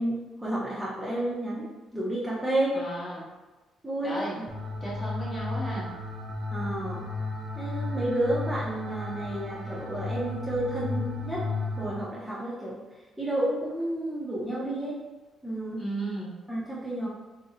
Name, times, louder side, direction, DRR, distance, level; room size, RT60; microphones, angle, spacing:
voice 1, 0.0-2.8 3.8-4.4 6.5-7.1 7.6-11.4 11.8-12.8 13.2-15.0 15.4-15.8 16.5-17.1, right 1 dB, 5° right, -8 dB, 0.6 m, -31 dB
voice 2, 2.7-3.2 4.0-4.4 4.8-5.9 15.8-16.3, right 1 dB, 25° left, -5 dB, 1.0 m, -34 dB
sound 1, 4.5-11.9, left 2 dB, 55° right, 0.6 m, -34 dB
2.5 x 2.1 x 3.6 m, 1.2 s
cardioid pair, 90°, 0 cm